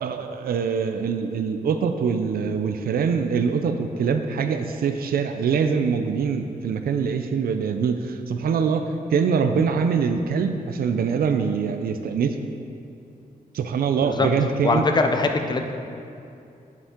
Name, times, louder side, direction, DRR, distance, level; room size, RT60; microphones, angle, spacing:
voice 1, 0.0-8.8 9.1-12.4 13.5-14.8, right 6 dB, 75° right, 7 dB, 0.4 m, -24 dB
voice 2, 14.6-15.7, left 3 dB, 30° left, 5 dB, 0.5 m, -22 dB
8.3 x 7.0 x 3.7 m, 2.6 s
wide cardioid pair, 175°, 15 cm